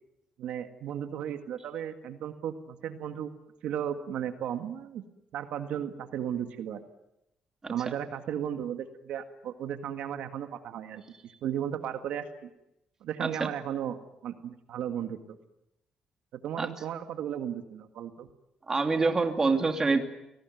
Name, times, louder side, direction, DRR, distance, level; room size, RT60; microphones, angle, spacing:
voice 1, 0.4-3.3 3.6-5.0 5.3-6.8 7.7-11.0 11.4-12.5 13.0-15.2 16.4-18.3, right 9 dB, 85° right, 8 dB, 1.8 m, -35 dB
voice 2, 13.2-13.5 16.6-16.7 18.7-20.0, right 3 dB, 25° right, 5 dB, 2.8 m, -26 dB
29.5 x 19.5 x 9.4 m, 0.87 s
cardioid pair, 115°, 2 cm